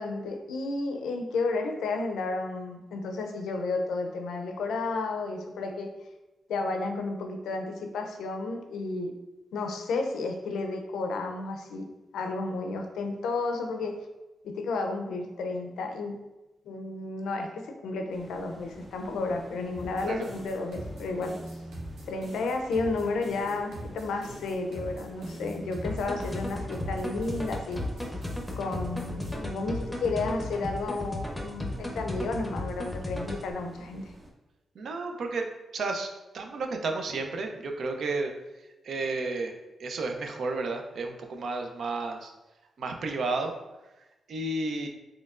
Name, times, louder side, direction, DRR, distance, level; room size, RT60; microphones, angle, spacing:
voice 1, 0.0-5.9 6.5-9.1 9.5-11.9 12.1-14.0 14.4-16.2 16.6-21.4 22.1-27.8 28.6-34.1, left 3 dB, 90° left, 4 dB, 0.5 m, -32 dB
sound 1, 18.1-34.3, right 1 dB, 30° right, 0.7 m, -52 dB
sound 2, 19.7-29.3, equal, 85° right, 1.1 m, -42 dB
sound 3, 25.8-33.5, left 1 dB, 10° left, 0.7 m, -35 dB
voice 2, 34.8-38.3 38.8-39.5 39.8-42.3 42.8-43.5 44.3-44.9, right 3 dB, 70° right, 4 dB, 0.5 m, -32 dB
4.2 x 3.1 x 2.4 m, 1.0 s
cardioid pair, 80°, 0 cm